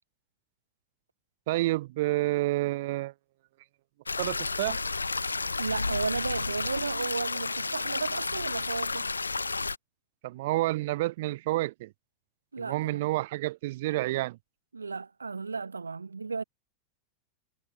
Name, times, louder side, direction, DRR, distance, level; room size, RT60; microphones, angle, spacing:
voice 1, 1.5-3.1 4.2-4.8 10.2-11.9 12.6-14.4, right 18 dB, 50° right, 3.1 m, -29 dB
sound 1, 4.1-9.8, left 3 dB, 80° left, 0.7 m, -31 dB
voice 2, 5.6-9.1 12.5-13.0 14.7-16.4, right 4 dB, 75° right, 1.8 m, -34 dB
figure-of-eight pair, 90°, 0 cm